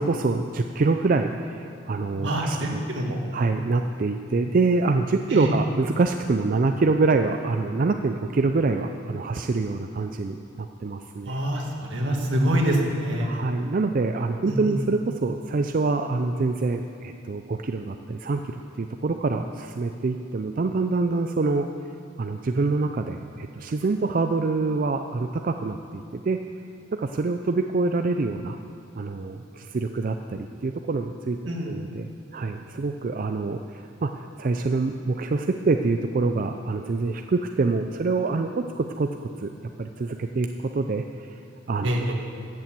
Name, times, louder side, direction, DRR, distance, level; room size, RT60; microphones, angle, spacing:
voice 1, 0.0-2.8 3.3-11.4 13.2-21.7 22.2-26.4 26.9-28.6 29.0-31.4 31.7-39.5 39.8-41.4 41.7-42.1, right 3 dB, 45° right, 6 dB, 0.4 m, -26 dB
voice 2, 2.2-3.2 5.3-5.5 11.3-13.3 14.5-14.8 31.5-31.7 41.8-42.1, right 1 dB, 80° right, 0 dB, 2.0 m, -25 dB
14.0 x 7.1 x 7.6 m, 2.4 s
head